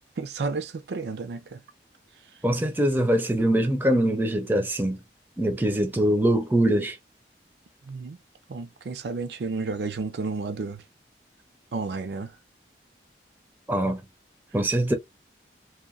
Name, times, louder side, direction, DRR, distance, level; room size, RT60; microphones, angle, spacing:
voice 1, 0.2-1.6 7.9-8.2 8.5-10.8 11.7-12.3, right 4 dB, 70° right, 0.4 m, -32 dB
voice 2, 2.4-5.0 5.4-7.0 13.7-14.0 14.5-14.9, right 1 dB, 10° right, 0.4 m, -23 dB
2.8 x 2.2 x 2.4 m
head